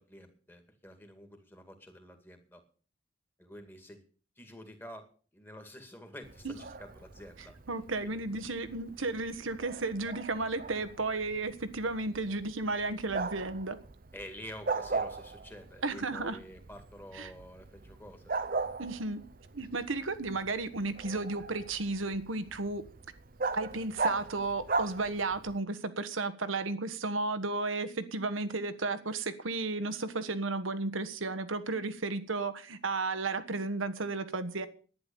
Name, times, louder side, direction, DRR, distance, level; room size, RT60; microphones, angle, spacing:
voice 1, 0.0-2.6 3.4-4.0 4.4-5.1 5.3-7.5 8.0-8.2 14.1-18.3, equal, 10° left, 6 dB, 2.1 m, -49 dB
Bark, 6.2-25.6, right 4 dB, 45° right, 0.7 m, -39 dB
voice 2, 7.4-13.8 15.8-16.4 17.1-17.3 18.8-19.2 19.5-22.8 23.5-34.7, right 3 dB, 85° right, 13 dB, 1.4 m, -33 dB
11.5 x 10.0 x 7.0 m, 0.40 s
head